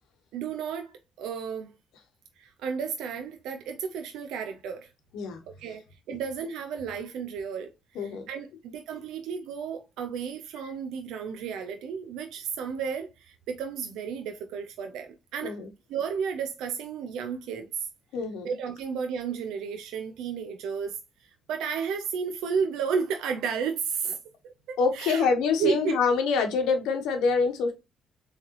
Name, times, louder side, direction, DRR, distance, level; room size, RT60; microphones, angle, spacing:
voice 1, 0.3-1.7 2.4-4.9 5.5-7.7 8.0-15.6 15.9-17.9 18.4-24.2 24.4-25.3 25.6-26.0, right 6 dB, 90° right, 0.5 m, -33 dB
voice 2, 18.1-18.5 24.8-27.7, left 5 dB, 90° left, 0.9 m, -25 dB
3.7 x 3.2 x 2.8 m
cardioid pair, 90°, 0 cm